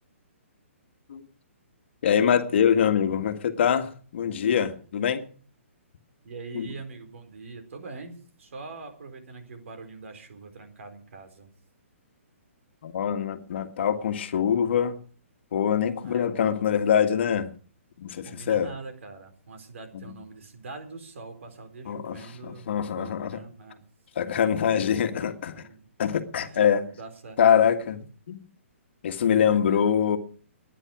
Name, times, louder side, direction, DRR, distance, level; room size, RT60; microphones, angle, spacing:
voice 1, 2.0-5.2 6.5-6.7 12.8-15.0 15.5-17.5 18.0-18.7 19.9-20.0 21.9-23.4 24.2-25.6 26.0-26.9 27.4-28.0 28.3-28.4 29.0-30.2, left 8 dB, 55° left, 1.8 m, -24 dB
voice 2, 6.2-11.5 16.0-16.3 18.2-23.8 25.5-25.9 26.4-26.6 26.9-27.4 29.3-29.8, right 3 dB, 65° right, 4.4 m, -43 dB
20.0 x 10.0 x 6.2 m
hypercardioid pair, 155°, 7 cm